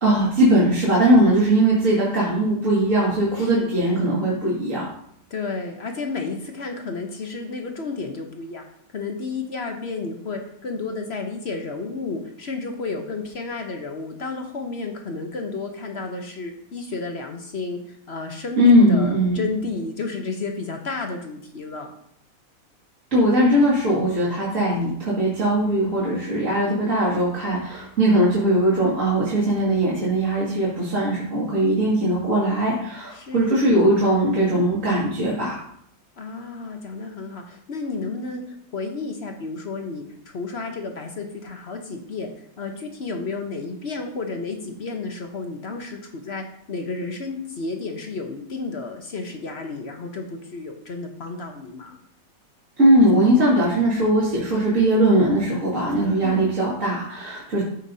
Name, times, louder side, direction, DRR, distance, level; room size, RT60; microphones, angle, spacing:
voice 1, 0.0-4.8 18.6-19.4 23.1-35.6 52.8-57.6, right 1 dB, 45° right, -8 dB, 2.5 m, -20 dB
voice 2, 3.4-3.7 5.3-8.6 8.9-21.9 33.1-33.8 36.2-42.3 42.6-52.0 56.2-56.5, left 3 dB, 45° left, 4 dB, 0.9 m, -32 dB
13.5 x 5.4 x 2.7 m, 0.70 s
omnidirectional pair, 2.0 m